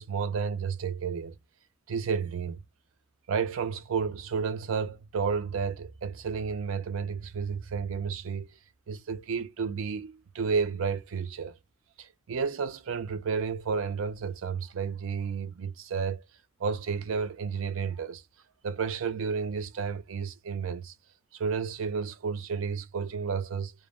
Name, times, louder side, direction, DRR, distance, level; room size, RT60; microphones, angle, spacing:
voice 1, 0.0-1.4 1.9-2.6 3.3-8.5 8.9-11.6 12.0-16.2 16.6-18.2 18.6-20.9 21.3-23.7, right 5 dB, 75° right, 0.4 m, -31 dB
3.2 x 2.0 x 2.3 m
head